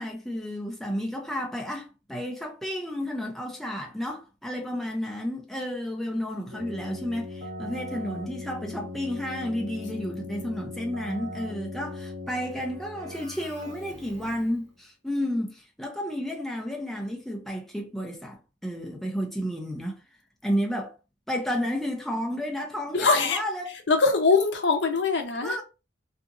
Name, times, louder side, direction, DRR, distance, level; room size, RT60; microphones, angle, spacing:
voice 1, 0.0-18.4 18.6-20.0 20.4-20.9 21.3-23.7 25.4-25.6, equal, ahead, 0.5 m, -31 dB
Keyboard (musical), 6.5-14.6, left 2 dB, 35° right, 1.2 m, -39 dB
voice 2, 22.9-23.4 23.9-25.6, left 4 dB, 65° left, 0.6 m, -22 dB
2.8 x 2.5 x 2.4 m
head